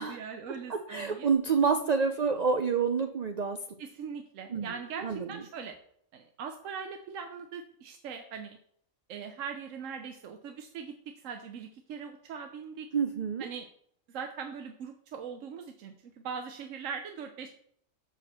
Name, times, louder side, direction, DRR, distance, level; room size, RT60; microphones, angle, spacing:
voice 1, 0.0-1.3 3.8-5.8 6.1-8.6 9.1-12.9 13.4-13.7 14.1-17.5, right 6 dB, 80° right, 5 dB, 1.1 m, -41 dB
voice 2, 0.7-3.6 4.5-4.7 5.0-5.4 12.9-13.5, right 5 dB, 50° right, 6 dB, 0.5 m, -28 dB
6.0 x 5.1 x 6.5 m, 0.67 s
omnidirectional pair, 1.3 m